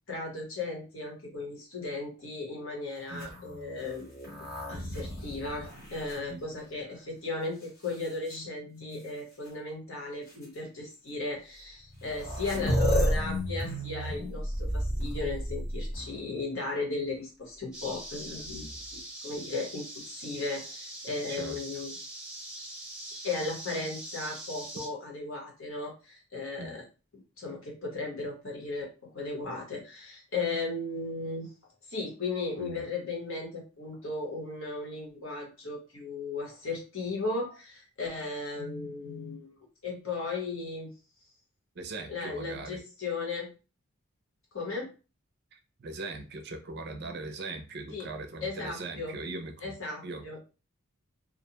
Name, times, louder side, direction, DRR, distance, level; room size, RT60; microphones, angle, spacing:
voice 1, 0.1-4.1 4.7-21.9 23.2-26.8 27.4-28.9 29.1-31.5 31.9-39.5 39.8-40.9 42.1-43.5 44.5-44.9 47.9-48.1 48.4-49.1 49.6-50.4, left 3 dB, 70° left, -1 dB, 1.0 m, -36 dB
sound 1, 3.1-6.9 7.6-8.3 9.4-9.5 10.3-10.4 11.6-11.7 11.9-16.3 18.3-19.0, equal, 45° left, 0.9 m, -33 dB
sound 2, 17.7-24.9, right 1 dB, 5° right, 0.7 m, -43 dB
voice 2, 21.3-21.8 26.6-26.8 32.6-32.8 41.7-42.8 45.5-49.7 50.0-50.3, right 2 dB, 50° right, 6 dB, 0.4 m, -40 dB
2.4 x 2.2 x 2.8 m, 0.33 s
head